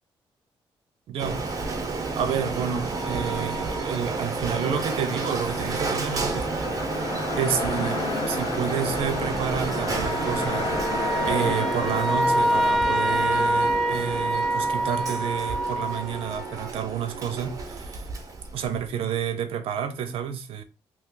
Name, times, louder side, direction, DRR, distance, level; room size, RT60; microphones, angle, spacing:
voice 1, 1.1-1.4 2.2-6.8 7.4-10.7 11.2-18.0 18.5-20.6, right 8 dB, 85° right, 0.6 m, -30 dB
Printer, 1.2-18.9, right 3 dB, 40° right, 0.8 m, -31 dB
sound 1, 2.9-4.4 4.7-5.0 5.2-5.5 8.8-16.7, right 1 dB, ahead, 0.6 m, -27 dB
sound 2, 4.5-15.8, left 4 dB, 70° left, 0.7 m, -34 dB
3.0 x 2.4 x 3.7 m
cardioid pair, 105°, 9 cm